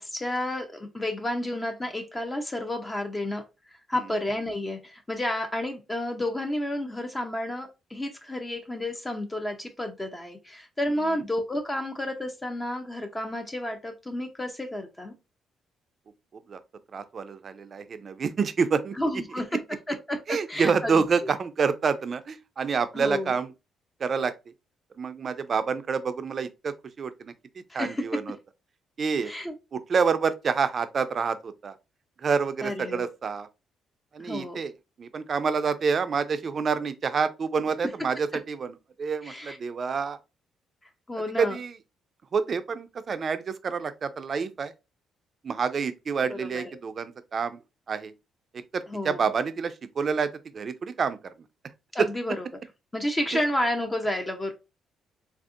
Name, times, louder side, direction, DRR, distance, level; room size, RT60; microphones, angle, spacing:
voice 1, 0.0-3.4 3.7-15.1 19.0-19.6 19.9-21.3 22.9-23.3 27.7-28.2 29.2-29.5 32.6-33.0 34.2-34.6 39.2-39.6 41.1-41.6 46.3-46.7 48.9-49.2 51.9-52.4 52.9-54.5, left 1 dB, 20° left, 0.6 m, -31 dB
voice 2, 16.9-19.0 20.3-23.5 24.0-24.3 25.0-27.3 27.7-28.4 29.0-29.3 29.7-31.8 32.2-33.5 34.1-34.7 35.0-40.2 41.4-41.8 42.3-44.7 45.4-47.6 47.9-48.1 48.7-51.2 52.0-52.1 53.3-53.4, right 5 dB, 45° right, 0.4 m, -28 dB
3.4 x 2.6 x 2.4 m
cardioid pair, 90°, 0 cm